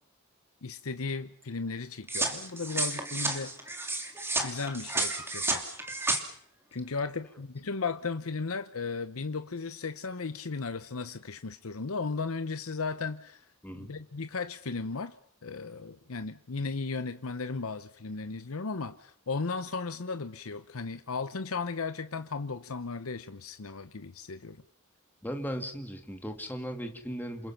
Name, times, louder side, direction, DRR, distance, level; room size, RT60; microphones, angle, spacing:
voice 1, 0.6-3.7 4.4-5.6 6.7-13.4 13.7-15.1 15.4-24.6, left 4 dB, 85° left, 10 dB, 0.9 m, -35 dB
sound 1, 2.1-6.2, right 2 dB, 10° right, 2.8 m, -31 dB
voice 2, 25.2-27.5, equal, 10° left, 5 dB, 2.1 m, -37 dB
28.0 x 21.5 x 5.9 m, 0.66 s
head